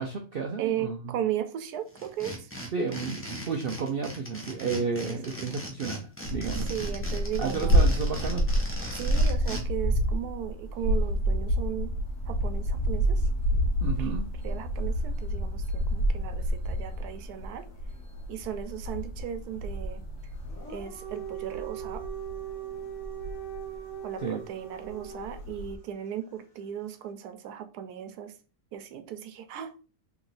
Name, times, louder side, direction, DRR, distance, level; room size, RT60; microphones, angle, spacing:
voice 1, 0.0-1.1 2.7-6.7 7.4-8.5 13.8-14.2 24.2-24.4, right 5 dB, 75° right, 3 dB, 0.5 m, -32 dB
voice 2, 0.6-2.5 5.1-5.2 6.7-8.0 8.9-11.9 12.3-13.3 14.0-14.1 14.4-17.6 18.3-20.0 20.7-22.0 24.0-28.3 28.7-29.7, right 10 dB, 90° right, 9 dB, 1.2 m, -36 dB
sound 1, 1.9-9.6, equal, 10° left, 0.6 m, -39 dB
sound 2, 6.2-24.0 24.4-24.5 24.8-25.7, equal, 75° left, 1.5 m, -28 dB
Dog, 20.4-25.6, right 8 dB, 50° left, 1.6 m, -40 dB
3.4 x 3.0 x 3.9 m, 0.34 s
omnidirectional pair, 1.6 m